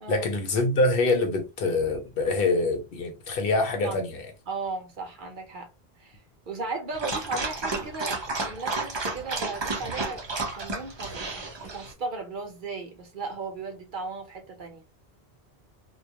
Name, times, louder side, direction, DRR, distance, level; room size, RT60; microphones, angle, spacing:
voice 1, 0.1-4.3, left 2 dB, 65° left, 0.8 m, -25 dB
voice 2, 3.8-4.1 4.5-5.7 6.0-6.2 6.5-10.3 10.5-11.3 11.7-14.8, right 3 dB, 55° right, 0.8 m, -36 dB
Dog, 6.9-11.9, right 3 dB, 35° right, 0.5 m, -32 dB
2.2 x 2.2 x 2.8 m
omnidirectional pair, 1.0 m